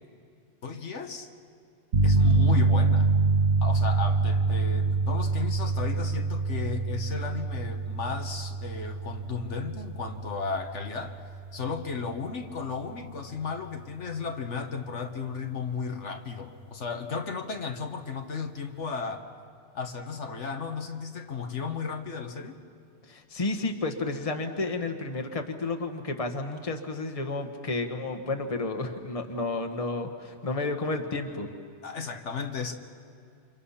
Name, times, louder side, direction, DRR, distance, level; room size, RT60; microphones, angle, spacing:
voice 1, 0.6-1.3 2.0-3.1 3.6-11.2 11.5-19.3 19.7-22.6 31.8-32.7, left 5 dB, 75° left, 4 dB, 1.6 m, -34 dB
sound 1, 1.9-12.5, right 3 dB, 60° right, 1.5 m, -26 dB
voice 2, 23.1-31.5, left 3 dB, 30° left, 5 dB, 1.5 m, -31 dB
29.5 x 26.0 x 5.7 m, 2.4 s
omnidirectional pair, 1.2 m